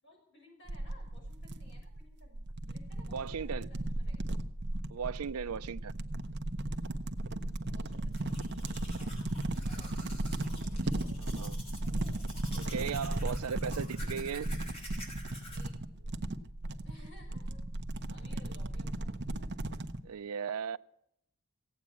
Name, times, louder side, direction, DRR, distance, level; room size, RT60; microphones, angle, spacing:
voice 1, 0.0-4.3 7.7-9.1 9.6-10.5 10.9-11.5 13.6-13.8 15.5-16.1 16.8-17.6 18.1-19.1, left 1 dB, 55° left, 6.6 m, -59 dB
sound 1, 0.7-20.0, right 1 dB, 50° right, 0.8 m, -36 dB
voice 2, 3.1-3.7 4.9-6.0 11.4-11.6 12.5-14.5 20.0-20.8, right 6 dB, 85° right, 0.5 m, -37 dB
Domestic sounds home sounds, 7.9-15.6, equal, 30° left, 3.9 m, -50 dB
16.5 x 8.5 x 8.5 m
head